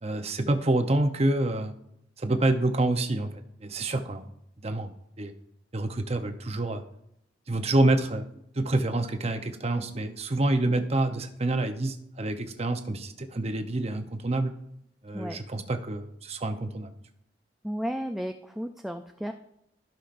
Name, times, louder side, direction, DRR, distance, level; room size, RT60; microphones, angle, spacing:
voice 1, 0.0-1.7 2.2-3.3 3.6-4.3 4.6-4.9 5.2-5.3 5.7-6.8 7.5-14.5 15.0-16.9, right 2 dB, 35° right, 7 dB, 0.8 m, -27 dB
voice 2, 17.6-19.3, equal, ahead, 5 dB, 0.3 m, -33 dB
15.0 x 5.7 x 2.6 m, 0.76 s
head